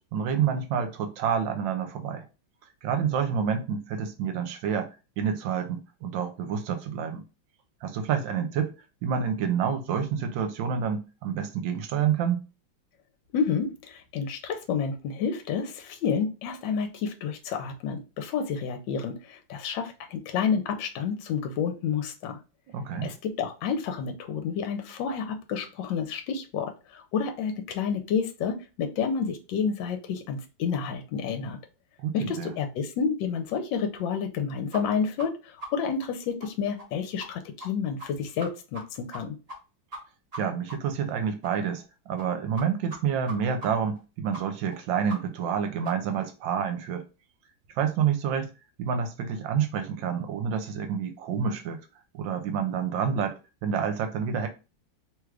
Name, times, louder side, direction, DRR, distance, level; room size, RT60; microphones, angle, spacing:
voice 1, 0.0-2.2 2.8-4.9 5.2-7.2 7.8-8.7 9.0-12.4 22.7-23.1 32.0-32.5 40.4-47.0 47.8-48.5 48.8-51.8 52.1-54.5, right 7 dB, 80° right, 1.3 m, -28 dB
voice 2, 13.3-22.4 23.0-31.6 32.1-39.4, left 6 dB, 75° left, 1.3 m, -30 dB
sound 1, 34.7-34.8 35.2-35.3 35.6-35.7 36.0-36.1 36.4-36.5 36.8-36.9 37.2-37.3 37.6-37.7 38.0-38.1 38.4-38.8 39.1-39.2 39.5-39.6 39.9-40.0 40.3-40.4 40.7-40.8 41.1-41.2 41.4-41.5 41.8-41.9 42.2-42.3 42.6-42.7 42.9-43.0 43.3-43.4 43.6-43.7 44.0-44.1 44.3-44.4 44.7-44.8 45.1-45.2 45.5-45.6 45.8-45.9 46.2-46.3, right 1 dB, 40° right, 0.5 m, -39 dB
3.2 x 2.4 x 3.2 m
omnidirectional pair, 2.1 m